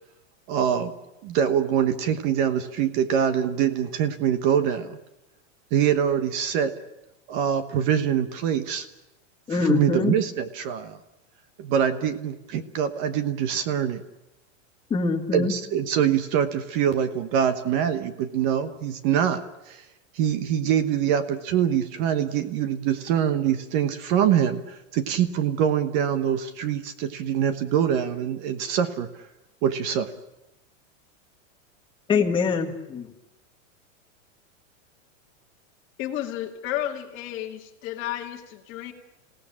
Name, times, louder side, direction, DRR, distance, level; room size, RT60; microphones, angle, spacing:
voice 1, 0.5-0.9 1.2-5.0 5.7-6.7 7.3-8.9 9.6-11.0 11.6-14.0 15.3-19.8 20.1-29.1 29.6-30.1, right 9 dB, 35° right, 11 dB, 1.2 m, -24 dB
voice 2, 9.5-10.1 14.9-15.5 32.1-33.1, left 4 dB, 15° left, 2 dB, 1.7 m, -24 dB
voice 3, 36.0-38.9, left 12 dB, 30° left, 3 dB, 2.2 m, -32 dB
28.0 x 17.5 x 8.7 m, 0.97 s
supercardioid pair, 165°, 38 cm